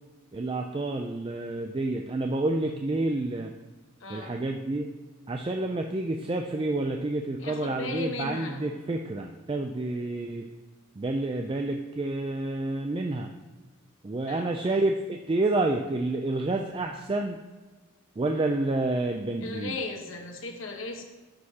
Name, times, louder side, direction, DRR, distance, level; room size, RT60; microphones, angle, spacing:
voice 1, 0.3-3.5 4.1-4.9 5.3-10.5 11.0-13.3 14.0-17.4 18.2-19.8, right 2 dB, 25° right, 3 dB, 0.3 m, -29 dB
voice 2, 4.0-4.4 7.4-8.6 14.3-14.7 19.4-21.0, left 2 dB, 70° left, 4 dB, 1.1 m, -36 dB
12.0 x 6.4 x 2.8 m, 1.3 s
head